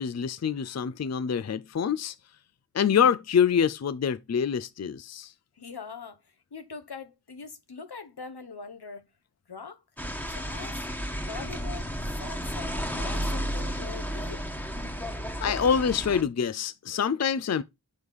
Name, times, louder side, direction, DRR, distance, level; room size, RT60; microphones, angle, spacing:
voice 1, 0.0-2.1 2.7-5.3 15.4-17.6, left 7 dB, 45° left, 0.4 m, -26 dB
voice 2, 5.6-9.1 9.5-9.8 10.2-10.8 11.1-11.9 12.2-14.5, left 4 dB, 75° left, 1.1 m, -42 dB
sound 1, 10.0-16.2, equal, 5° left, 1.4 m, -33 dB
6.3 x 4.8 x 5.3 m
wide cardioid pair, 50°, 39 cm